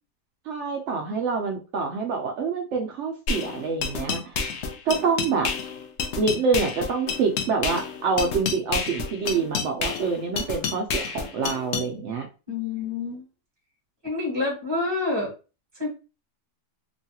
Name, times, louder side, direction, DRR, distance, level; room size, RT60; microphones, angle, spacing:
voice 1, 0.5-4.4 4.9-5.5 6.2-12.3, right 4 dB, 85° right, 3 dB, 0.6 m, -26 dB
sound 1, 3.3-11.9, left 5 dB, 90° left, 0.6 m, -29 dB
voice 2, 12.5-13.2 14.0-15.3 15.8-15.9, left 3 dB, 15° right, -2 dB, 1.2 m, -27 dB
3.1 x 2.3 x 2.7 m, 0.32 s
omnidirectional pair, 1.8 m